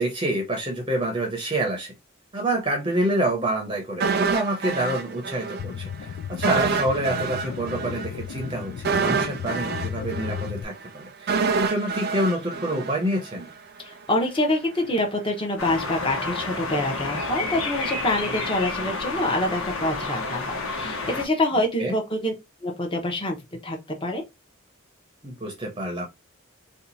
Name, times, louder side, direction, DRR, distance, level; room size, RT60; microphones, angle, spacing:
voice 1, 0.0-1.9 2.3-13.5 21.8-21.9 25.2-26.1, right 1 dB, 25° right, 0.7 m, -27 dB
sound 1, 4.0-5.6 5.9-6.0 6.4-13.5 13.8-13.9, right 5 dB, 50° right, 0.4 m, -27 dB
sound 2, 5.6-10.6, left 8 dB, 70° left, 0.3 m, -35 dB
voice 2, 13.8-22.3 22.6-23.4 23.6-24.2, left 1 dB, 25° left, 0.9 m, -26 dB
sound 3, 15.6-21.2, left 3 dB, 85° left, 1.0 m, -30 dB
2.8 x 2.3 x 3.9 m
head